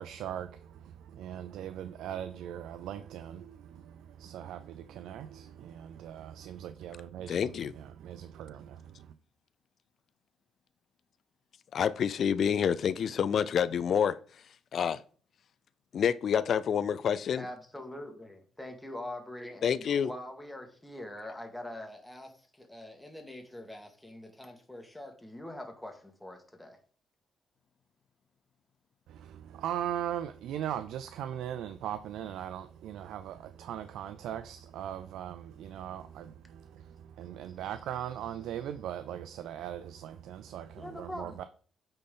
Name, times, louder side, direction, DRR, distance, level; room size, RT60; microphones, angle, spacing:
voice 1, 0.0-9.1 29.1-41.4, right 10 dB, 85° right, 0.4 m, -39 dB
voice 2, 7.3-7.7 11.7-14.1 14.7-15.0 15.9-17.4 19.6-20.1, left 8 dB, 60° left, 0.3 m, -28 dB
voice 3, 17.4-26.8 40.7-41.4, left 1 dB, 5° left, 1.7 m, -44 dB
8.6 x 4.1 x 3.8 m
cardioid pair, 90°, 0 cm